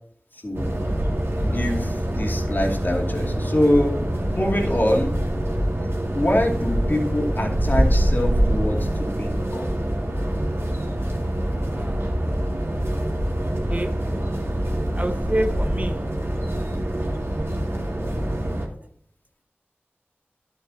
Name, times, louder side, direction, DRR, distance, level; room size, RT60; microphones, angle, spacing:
sound 1, 0.5-18.7, right 1 dB, 70° right, 2.6 m, -25 dB
voice 1, 1.4-4.0 4.3-5.2 6.1-9.7, left 1 dB, 50° left, 0 dB, 2.6 m, -24 dB
voice 2, 15.0-16.0, right 1 dB, 35° right, 6 dB, 0.9 m, -27 dB
11.0 x 8.8 x 2.9 m, 0.63 s
wide cardioid pair, 50°, 4 cm